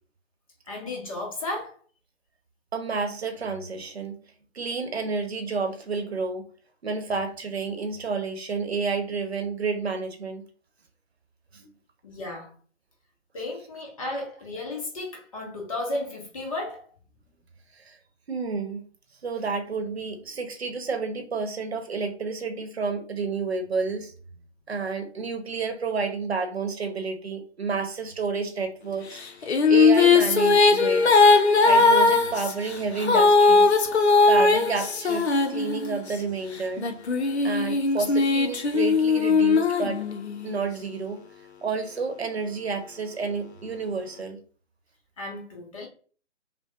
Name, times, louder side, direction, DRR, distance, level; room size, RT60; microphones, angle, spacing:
voice 1, 0.7-1.8 12.0-12.6 13.3-16.9 45.2-45.9, left 2 dB, 30° left, 0.9 m, -34 dB
voice 2, 2.7-4.2 4.5-6.5 6.8-10.4 11.5-11.7 17.7-18.0 18.3-18.8 19.2-24.1 24.7-29.2 29.4-31.3 31.6-33.7 34.2-36.9 37.4-40.0 40.4-41.2 41.6-44.4, right 4 dB, 60° right, 1.0 m, -30 dB
sound 1, 29.2-36.2 36.8-40.5, left 4 dB, 60° left, 0.7 m, -19 dB
5.7 x 2.2 x 2.4 m
figure-of-eight pair, 135°, 37 cm